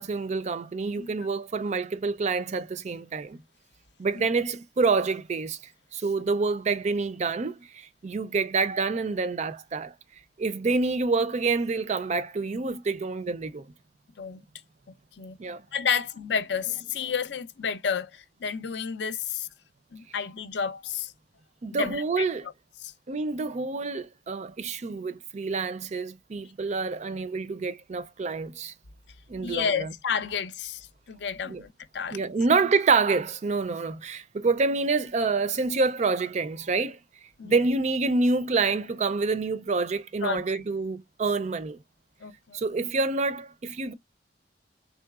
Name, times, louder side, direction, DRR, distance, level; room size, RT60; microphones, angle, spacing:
voice 1, 0.0-3.4 4.0-5.6 5.9-9.9 10.4-13.7 15.4-15.6 21.6-22.5 23.1-28.7 29.3-29.9 31.4-31.6 32.1-37.0 37.4-41.8 42.5-43.9, right 4 dB, 40° right, 0.4 m, -27 dB
voice 2, 15.7-19.5 19.9-21.1 21.7-22.3 29.4-30.8 31.1-32.3 37.4-37.6 40.2-40.6 42.2-42.6, left 6 dB, 75° left, 0.5 m, -31 dB
3.8 x 3.1 x 2.3 m
head